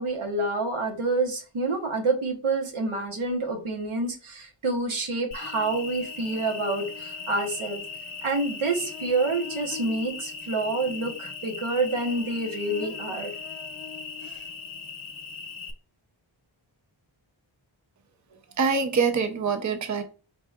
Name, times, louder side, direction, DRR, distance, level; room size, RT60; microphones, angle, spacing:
voice 1, 0.0-7.8 8.2-13.3 14.2-14.4, right 3 dB, 85° right, 1.2 m, -28 dB
Cricket, 5.3-15.7, left 5 dB, 70° left, 0.8 m, -38 dB
voice 2, 18.6-20.0, right 5 dB, 35° right, 0.6 m, -24 dB
4.6 x 3.9 x 2.4 m
wide cardioid pair, 75°, 48 cm